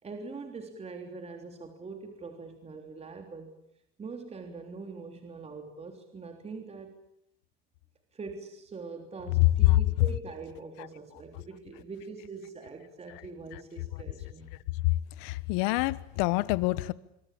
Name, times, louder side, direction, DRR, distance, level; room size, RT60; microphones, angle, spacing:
voice 1, 0.0-3.5 4.0-7.0 8.1-14.5, right 4 dB, 20° right, 3.6 m, -43 dB
voice 2, 15.2-16.9, left 19 dB, 65° left, 1.4 m, -27 dB
25.0 x 25.0 x 8.8 m
supercardioid pair, 120°, 30 cm